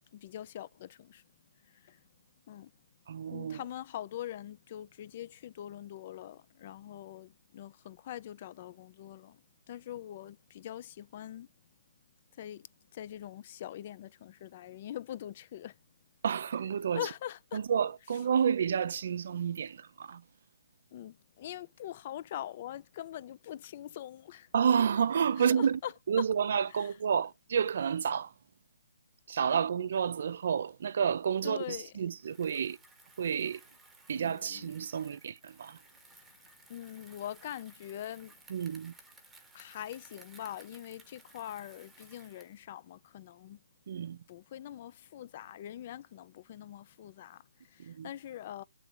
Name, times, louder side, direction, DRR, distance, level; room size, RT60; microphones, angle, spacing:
voice 1, 0.1-1.2 1.7-2.0 2.5-2.7 3.3-11.5 12.3-12.7 12.9-15.8 16.9-17.6 20.9-24.5 25.4-25.9 26.7-26.9 29.8-29.9 31.4-31.9 34.1-34.9 36.2-36.3 36.7-38.4 39.5-43.6 44.3-48.6, left 12 dB, 35° left, 0.4 m, -43 dB
voice 2, 3.1-3.6 16.2-17.1 17.5-20.2 24.5-25.8 26.1-28.3 29.3-32.8 33.2-33.6 34.1-35.8 38.5-38.9 43.9-44.2 47.8-48.1, right 7 dB, 50° right, 0.5 m, -30 dB
Bicycle, 32.1-42.6, right 3 dB, 5° right, 1.1 m, -58 dB
7.8 x 3.8 x 6.2 m
hypercardioid pair, 165°, 0 cm